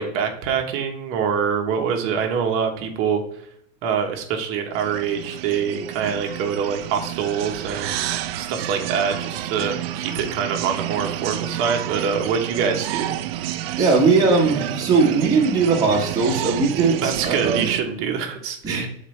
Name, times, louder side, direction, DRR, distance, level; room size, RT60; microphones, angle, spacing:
voice 1, 0.0-3.2 3.8-7.9 8.4-13.2 17.0-18.9, right 6 dB, 30° right, 4 dB, 1.0 m, -25 dB
sound 1, 4.7-17.8, right 13 dB, 50° right, 0.4 m, -30 dB
voice 2, 13.8-17.6 18.6-18.9, right 4 dB, 10° right, -5 dB, 1.3 m, -19 dB
7.2 x 4.1 x 3.2 m, 0.72 s
supercardioid pair, 150°, 41 cm